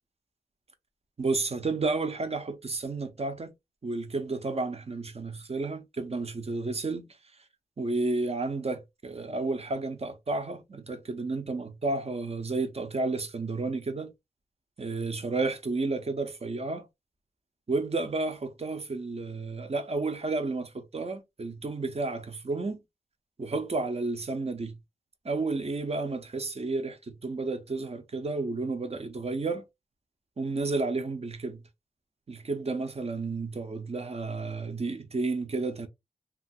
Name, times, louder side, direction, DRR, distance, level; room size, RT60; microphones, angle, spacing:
voice 1, 1.2-3.5 3.8-7.1 7.8-14.1 14.8-16.9 17.7-22.8 23.4-24.8 25.2-29.6 30.4-31.6 32.3-35.9, right 3 dB, 45° right, 0.6 m, -31 dB
2.9 x 2.4 x 2.7 m
wide cardioid pair, 85°, 15 cm